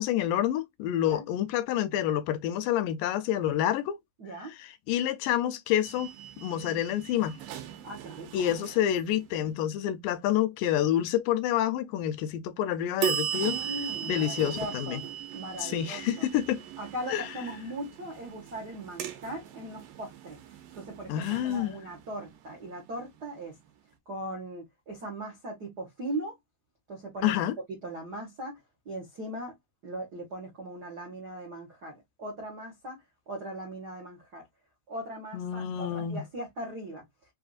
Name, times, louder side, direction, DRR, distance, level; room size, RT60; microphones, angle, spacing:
voice 1, 0.0-4.0 4.5-7.4 8.3-13.8 14.1-15.0 15.6-16.6 17.1-17.3 21.1-21.8 27.2-27.6 35.3-36.2, left 11 dB, 80° left, 2.2 m, -28 dB
voice 2, 4.2-4.5 7.8-8.5 13.4-15.0 15.3-16.2 16.8-20.4 20.7-23.6 24.1-26.4 26.9-27.3 27.8-28.6 28.8-29.6 29.8-33.0 33.3-34.4 34.9-37.0, right 1 dB, 60° right, 1.0 m, -39 dB
sound 1, 5.8-9.6 13.0-23.7, right 11 dB, 90° right, 2.6 m, -38 dB
5.5 x 2.6 x 2.4 m
omnidirectional pair, 4.0 m